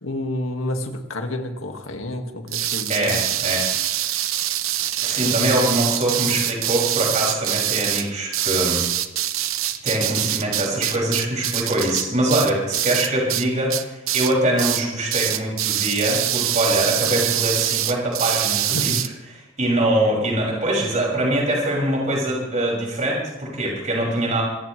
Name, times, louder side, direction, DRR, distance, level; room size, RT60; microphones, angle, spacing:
voice 1, 0.0-3.3 5.2-5.8 18.7-19.0, left 1 dB, 85° left, 4 dB, 2.0 m, -29 dB
sound 1, 2.5-13.4 13.7-14.3 14.6-14.8 15.1-19.1, right 12 dB, 90° right, 0.9 m, -24 dB
voice 2, 2.9-3.7 4.0-4.2 5.0-8.8 9.8-24.4, right 1 dB, 35° right, -3 dB, 6.5 m, -23 dB
26.0 x 15.5 x 3.3 m, 1.1 s
head